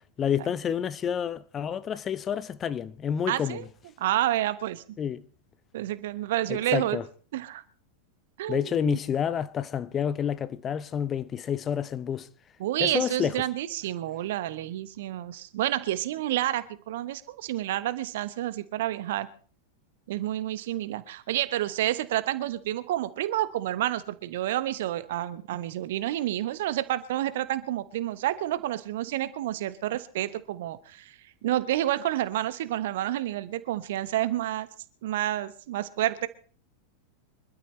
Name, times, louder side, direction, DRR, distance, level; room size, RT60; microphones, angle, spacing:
voice 1, 0.2-3.7 5.0-5.2 6.5-7.1 8.5-12.3 12.8-13.4, left 8 dB, 25° left, 0.7 m, -29 dB
voice 2, 3.3-3.6 4.0-5.0 5.7-7.0 7.3-7.6 8.4-9.0 12.6-19.3 20.1-34.7 35.0-36.3, right 13 dB, 55° right, 1.1 m, -29 dB
25.5 x 12.5 x 3.2 m
figure-of-eight pair, 90°, 0 cm